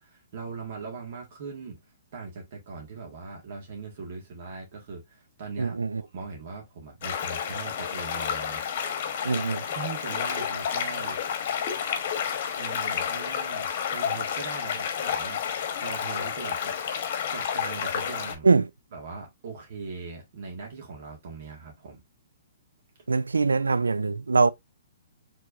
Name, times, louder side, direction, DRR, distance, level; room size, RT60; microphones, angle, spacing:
voice 1, 0.0-1.8 2.1-9.1 9.6-11.2 12.6-15.4 15.8-16.7 17.3-18.5 18.9-22.0, right 4 dB, 55° right, 1.9 m, -40 dB
voice 2, 5.6-6.0 9.2-9.6 18.4-18.7 23.1-24.5, right 4 dB, 90° right, 0.4 m, -22 dB
sound 1, 7.0-18.3, left 8 dB, 50° left, 1.2 m, -30 dB
4.7 x 3.7 x 2.6 m
hypercardioid pair, 130°, 0 cm